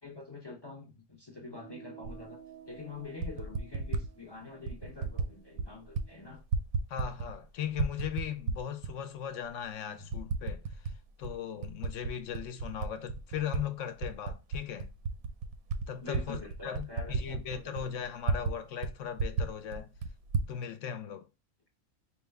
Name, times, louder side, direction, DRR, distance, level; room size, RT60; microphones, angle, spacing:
voice 1, 0.0-2.4 2.7-6.4 10.0-10.1 16.0-17.8, left 3 dB, 35° left, 0.4 m, -45 dB
sound 1, 1.5-6.3, right 8 dB, 45° right, 0.4 m, -54 dB
Typing, 2.0-2.2 3.0-4.1 4.7-5.3 5.6-6.1 6.3-7.4 7.7-8.9 9.5-9.6 10.1-11.0 11.2-13.6 14.0-18.6 18.8-18.9 19.2-20.5, right 4 dB, 80° right, 1.0 m, -33 dB
voice 2, 6.9-14.9 15.9-19.9 20.5-21.3, left 9 dB, 70° left, 0.9 m, -38 dB
4.6 x 2.2 x 3.3 m
omnidirectional pair, 1.5 m